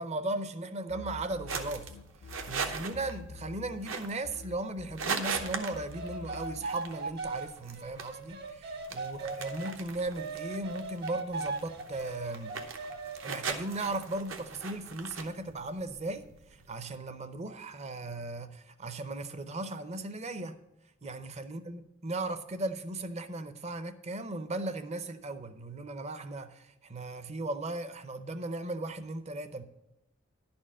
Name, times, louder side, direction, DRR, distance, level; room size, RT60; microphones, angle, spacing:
voice 1, 0.0-1.9 2.5-12.6 13.2-20.6 21.0-29.6, right 2 dB, 30° right, 0.6 m, -37 dB
sound 1, 0.9-4.0 4.2-6.8, left 4 dB, 75° left, 0.4 m, -47 dB
sound 2, 1.5-16.8, right 5 dB, 70° right, 0.9 m, -40 dB
sound 3, 5.2-9.7 10.1-13.3, right 3 dB, 50° right, 1.3 m, -39 dB
11.0 x 4.4 x 7.2 m
head